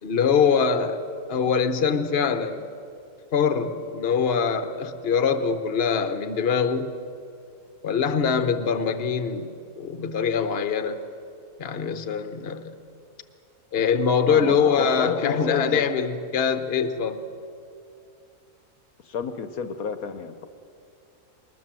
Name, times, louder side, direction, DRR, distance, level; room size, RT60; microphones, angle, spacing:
voice 1, 0.0-1.0 1.3-2.7 3.3-7.0 7.8-11.0 11.6-12.8 13.7-17.2, left 6 dB, 45° left, 9 dB, 1.1 m, -23 dB
voice 2, 14.3-15.8 19.0-20.5, left 6 dB, 65° left, 9 dB, 1.3 m, -31 dB
21.0 x 20.0 x 7.6 m, 2.5 s
omnidirectional pair, 1.7 m